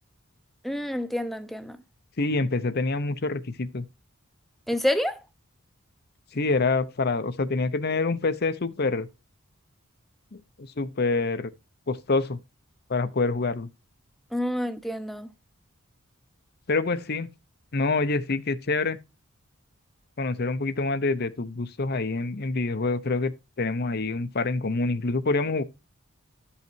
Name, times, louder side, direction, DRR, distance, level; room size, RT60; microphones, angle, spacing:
voice 1, 0.6-1.8 4.7-5.2 14.3-15.3, left 1 dB, ahead, 0.8 m, -28 dB
voice 2, 2.2-3.8 6.3-9.1 10.3-11.5 11.9-12.4 12.9-13.7 16.7-17.3 17.7-19.0 20.2-23.3 23.6-25.6, left 3 dB, 50° left, 0.7 m, -26 dB
12.0 x 5.7 x 4.5 m
head